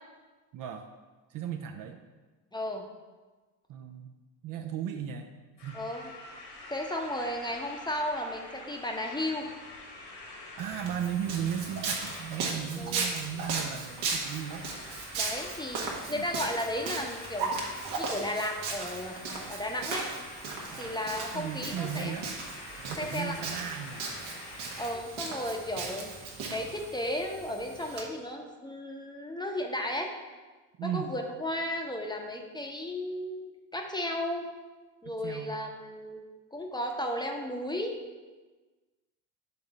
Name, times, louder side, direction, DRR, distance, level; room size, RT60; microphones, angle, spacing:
voice 1, 0.5-0.9 1.3-2.0 3.7-4.1 4.4-5.3 5.6-5.8 10.6-14.7 16.1-16.3 20.7-22.4 22.8-24.0 30.8-31.1 35.1-35.6, right 9 dB, 45° right, 5 dB, 0.5 m, -36 dB
voice 2, 2.5-2.8 5.7-6.1 6.7-9.5 12.8-13.1 15.2-17.6 18.0-20.1 20.8-22.3 23.0-23.4 24.8-26.1 26.5-30.1 30.8-34.4 35.0-36.3 36.5-37.9, left 1 dB, 10° left, 2 dB, 0.8 m, -34 dB
sound 1, 5.6-24.9, left 2 dB, 70° left, 1.8 m, -47 dB
Walk footsteps, 10.6-28.0, right 4 dB, 70° right, 1.3 m, -37 dB
6.9 x 3.8 x 4.0 m, 1.3 s
hypercardioid pair, 70°, 48 cm